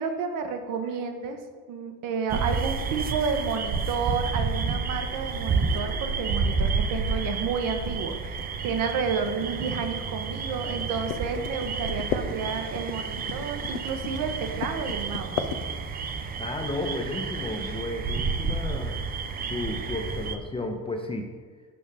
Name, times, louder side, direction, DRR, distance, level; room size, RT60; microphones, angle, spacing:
voice 1, 0.0-1.4 1.7-15.5, right 5 dB, 50° right, 6 dB, 0.9 m, -31 dB
sound 1, 2.3-20.4, right 4 dB, 20° right, 0.5 m, -30 dB
sound 2, 5.2-16.2, left 9 dB, 60° left, 0.6 m, -37 dB
voice 2, 16.4-19.0 19.5-21.3, left 2 dB, 15° left, 3 dB, 0.7 m, -33 dB
6.9 x 5.4 x 3.4 m, 1.5 s
figure-of-eight pair, 55°, 43 cm